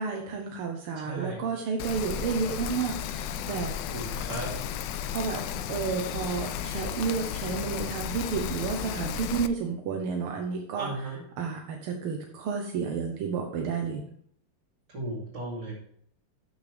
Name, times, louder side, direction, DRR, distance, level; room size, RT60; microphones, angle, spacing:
voice 1, 0.0-3.8 5.1-11.1 11.4-14.0, right 5 dB, 80° right, 2 dB, 1.9 m, -31 dB
voice 2, 1.0-1.4 3.9-4.5 10.7-11.2 14.9-15.7, right 2 dB, 55° right, -9 dB, 3.1 m, -35 dB
Rain, 1.8-9.5, left 9 dB, 75° left, 1.0 m, -34 dB
12.5 x 6.6 x 3.4 m, 0.65 s
omnidirectional pair, 2.4 m